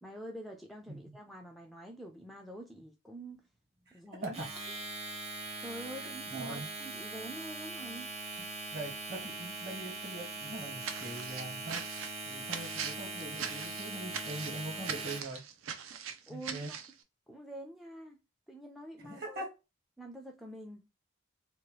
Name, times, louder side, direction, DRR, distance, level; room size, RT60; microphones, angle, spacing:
voice 1, 0.0-3.4 3.9-4.3 5.6-8.1 16.3-16.8 17.3-18.2 18.5-19.5 20.0-20.9, right 1 dB, ahead, 0.3 m, -46 dB
voice 2, 3.9-4.4 6.0-6.7 8.7-11.8 12.2-15.4 16.3-16.7 19.0-19.5, right 1 dB, 50° right, 1.4 m, -42 dB
Domestic sounds home sounds, 4.2-15.4, right 2 dB, 30° right, 0.8 m, -41 dB
sound 1, 10.8-16.9, right 7 dB, 80° right, 0.5 m, -41 dB
2.9 x 2.3 x 3.0 m
head